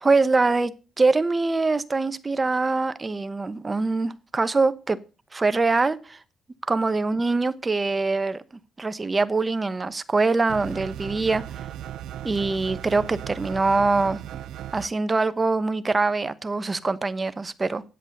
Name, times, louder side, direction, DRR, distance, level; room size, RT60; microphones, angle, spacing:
voice 1, 0.0-0.7 1.0-5.0 5.3-6.2 6.7-8.4 8.8-11.4 12.2-14.2 14.7-17.8, right 3 dB, 25° right, 13 dB, 1.0 m, -23 dB
sound 1, 10.5-14.9, right 11 dB, 80° right, 0.6 m, -36 dB
10.0 x 8.2 x 6.6 m, 0.34 s
cardioid pair, 90°, 0 cm